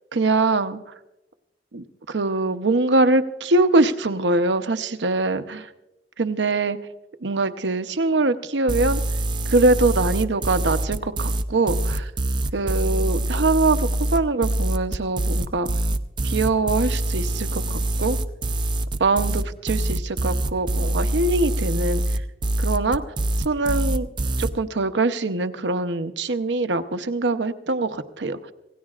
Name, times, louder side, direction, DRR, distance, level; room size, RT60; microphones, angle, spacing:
voice 1, 0.1-0.8 1.7-5.7 6.2-6.8 7.2-9.0 9.5-12.1 12.5-15.7 16.2-18.2 19.0-22.0 22.6-23.0 23.4-24.1 24.4-28.5, right 2 dB, 80° right, 10 dB, 0.8 m, -23 dB
sound 1, 8.7-24.5, right 1 dB, 25° right, 0.5 m, -24 dB
26.5 x 17.0 x 2.5 m, 0.96 s
head